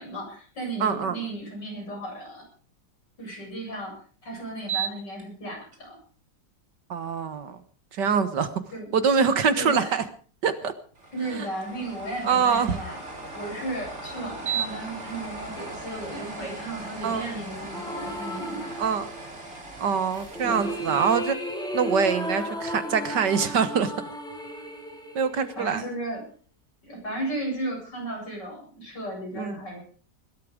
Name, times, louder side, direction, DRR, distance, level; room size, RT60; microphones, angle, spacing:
voice 1, 0.0-2.4 3.2-3.9 4.2-6.0 8.7-8.9 9.5-9.9 11.1-13.0 13.3-18.8 20.4-20.8 25.6-26.2 26.8-29.8, right 1 dB, 70° left, 0 dB, 8.9 m, -35 dB
voice 2, 0.8-1.2 6.9-7.6 7.9-8.5 8.9-10.0 10.4-10.7 11.3-11.5 12.2-12.8 17.0-17.3 18.8-19.1 19.8-21.4 21.7-23.9 25.2-25.8 29.4-29.6, right 6 dB, 70° right, 11 dB, 2.0 m, -24 dB
sound 1, 4.6-5.2 5.7-5.8 11.0-21.2, right 5 dB, 35° right, 4.3 m, -37 dB
sound 2, 17.7-19.4 20.1-26.2, equal, ahead, 3.7 m, -35 dB
21.0 x 12.5 x 5.1 m, 0.43 s
omnidirectional pair, 1.9 m